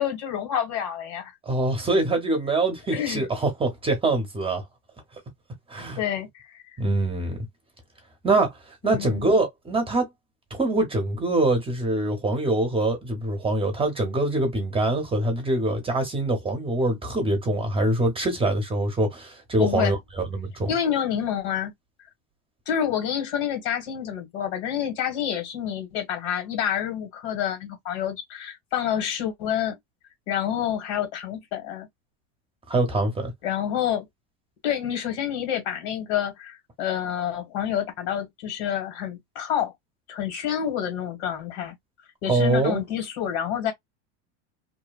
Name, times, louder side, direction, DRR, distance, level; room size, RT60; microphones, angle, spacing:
voice 1, 0.0-1.3 2.9-3.2 5.9-6.6 8.8-9.4 19.6-20.0 20.7-21.7 22.7-29.7 30.3-31.9 33.4-34.1 34.6-39.7 40.1-41.7 42.2-43.7, left 9 dB, 75° left, 1.7 m, -28 dB
voice 2, 1.5-4.6 5.7-6.0 6.8-7.4 8.2-10.1 10.5-20.0 20.3-20.7 32.7-33.3 42.3-42.8, right 2 dB, 15° right, 0.8 m, -24 dB
2.7 x 2.2 x 2.2 m
supercardioid pair, 130°, 34 cm